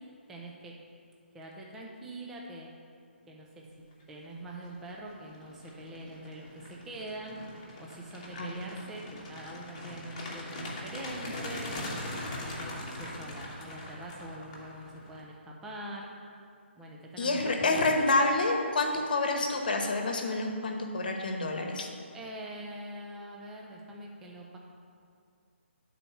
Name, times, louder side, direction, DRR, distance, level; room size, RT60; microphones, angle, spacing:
voice 1, 0.3-0.7 1.3-2.7 3.3-3.6 4.1-7.4 7.8-11.8 12.3-16.1 16.7-18.0 22.1-24.6, right 1 dB, 5° right, -2 dB, 0.3 m, -44 dB
sound 1, 4.4-4.7 5.1-15.2, left 1 dB, 20° left, 1.0 m, -41 dB
voice 2, 17.2-21.9, left 2 dB, 45° left, 3 dB, 1.0 m, -28 dB
10.0 x 4.1 x 5.6 m, 2.4 s
hypercardioid pair, 175°, 7 cm